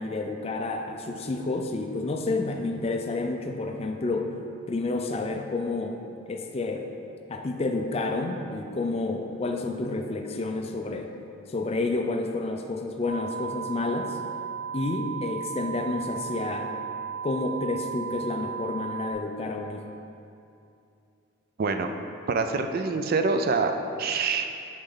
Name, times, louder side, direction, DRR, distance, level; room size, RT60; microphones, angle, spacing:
voice 1, 0.0-4.4 4.7-6.0 6.3-6.9 7.3-11.1 11.5-14.2 14.7-16.7 17.2-19.9, left 3 dB, 30° left, 4 dB, 0.4 m, -30 dB
sound 1, 13.1-19.1, right 7 dB, 60° left, 1.4 m, -35 dB
voice 2, 21.6-21.9 22.3-24.5, right 4 dB, 50° right, 6 dB, 0.3 m, -26 dB
8.8 x 4.0 x 3.8 m, 2.6 s
head